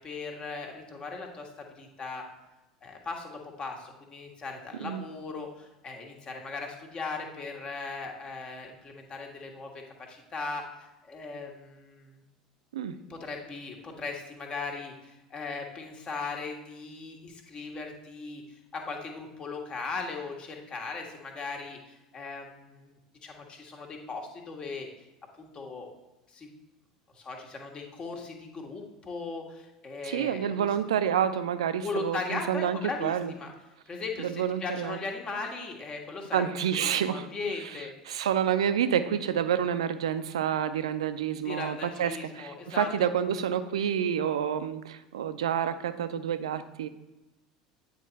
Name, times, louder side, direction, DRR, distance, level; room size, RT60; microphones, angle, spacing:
voice 1, 0.0-2.2 2.8-9.7 10.1-12.2 13.1-24.9 25.3-25.9 26.3-26.5 27.1-30.7 31.8-33.5 33.8-36.4 37.1-37.9 41.4-42.9, left 4 dB, 30° left, 1 dB, 1.6 m, -38 dB
voice 2, 30.0-33.3 34.2-35.0 36.3-37.3 37.6-46.9, right 9 dB, 70° right, 12 dB, 0.5 m, -29 dB
9.1 x 4.5 x 4.1 m, 1.0 s
figure-of-eight pair, 70°, 3 cm